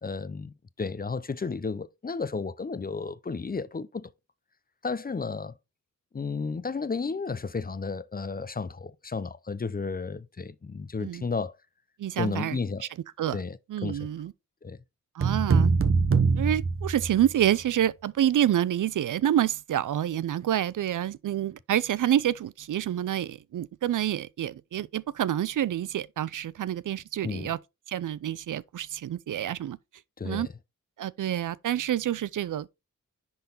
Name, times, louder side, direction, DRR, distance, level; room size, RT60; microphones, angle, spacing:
voice 1, 0.0-4.1 4.8-5.5 6.1-11.6 12.2-12.9 13.3-14.1 14.6-14.8 27.2-27.5 30.2-30.5, left 4 dB, 25° left, 0.6 m, -33 dB
voice 2, 12.0-12.6 13.2-13.4 13.7-14.3 15.2-15.7 16.4-27.6 27.9-29.8 30.2-30.5 31.0-32.8, right 11 dB, 70° right, 0.5 m, -28 dB
sound 1, 15.2-17.5, right 4 dB, 40° right, 1.1 m, -23 dB
10.5 x 3.9 x 3.9 m
cardioid pair, 75°, 33 cm